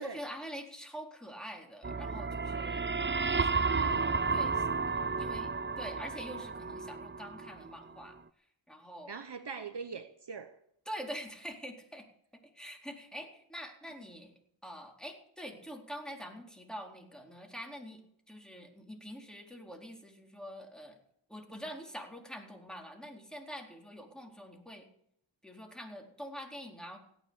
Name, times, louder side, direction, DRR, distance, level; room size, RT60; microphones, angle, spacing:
voice 1, 0.0-2.9 3.3-5.5 5.8-8.2 8.7-9.1 10.9-12.1 12.5-14.3 14.6-18.0 18.3-21.0 21.3-24.9 25.4-27.0, equal, ahead, 4.0 m, -45 dB
sound 1, 1.8-7.7, right 4 dB, 25° right, 0.6 m, -32 dB
voice 2, 3.7-4.1 9.1-10.6, right 5 dB, 55° right, 1.0 m, -42 dB
17.0 x 9.5 x 8.6 m
wide cardioid pair, 50°, 49 cm